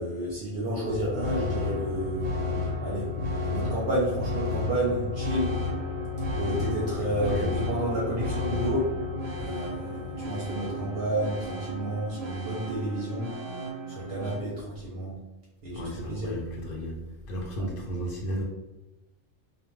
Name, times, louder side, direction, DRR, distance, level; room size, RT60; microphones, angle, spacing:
voice 1, 0.0-2.3 2.8-3.0 3.4-5.5 6.4-8.8 9.4-13.3 13.9-15.1 15.6-16.3, right 1 dB, 60° right, -5 dB, 0.8 m, -30 dB
sound 1, 0.8-14.4, left 3 dB, 85° right, 0.9 m, -32 dB
voice 2, 7.0-7.5 15.7-17.0 17.3-18.4, equal, 60° left, 1 dB, 0.6 m, -33 dB
2.2 x 2.2 x 3.0 m, 1.1 s
omnidirectional pair, 1.2 m